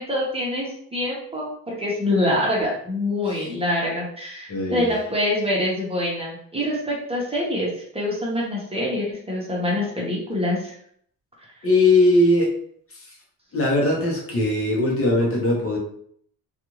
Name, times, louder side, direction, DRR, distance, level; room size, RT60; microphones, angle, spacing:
voice 1, 0.0-10.7, left 1 dB, 15° right, -4 dB, 0.9 m, -25 dB
voice 2, 4.5-4.9 11.6-12.5 12.9-13.2 13.5-15.8, left 2 dB, 35° left, -2 dB, 0.9 m, -20 dB
2.5 x 2.4 x 3.0 m, 0.65 s
cardioid pair, 110°, 37 cm